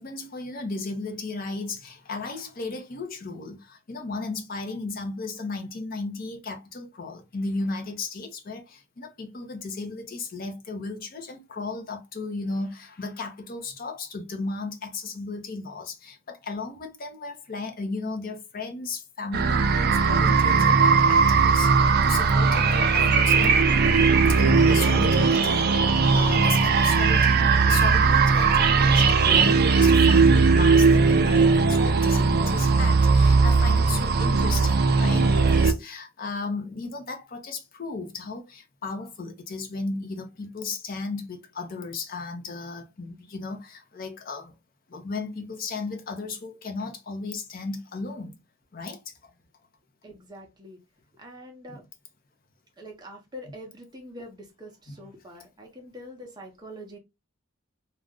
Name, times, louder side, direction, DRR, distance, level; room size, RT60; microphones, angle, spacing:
voice 1, 0.0-23.6 24.3-44.5 44.9-48.4 48.7-49.3 51.7-51.8 53.4-53.5 54.9-55.0, left 3 dB, 40° left, 0.5 m, -35 dB
sound 1, 19.3-35.7, right 4 dB, 45° right, 0.3 m, -19 dB
voice 2, 50.0-50.8 51.2-51.8 52.8-57.0, equal, 20° right, 0.7 m, -44 dB
2.4 x 2.1 x 3.5 m
head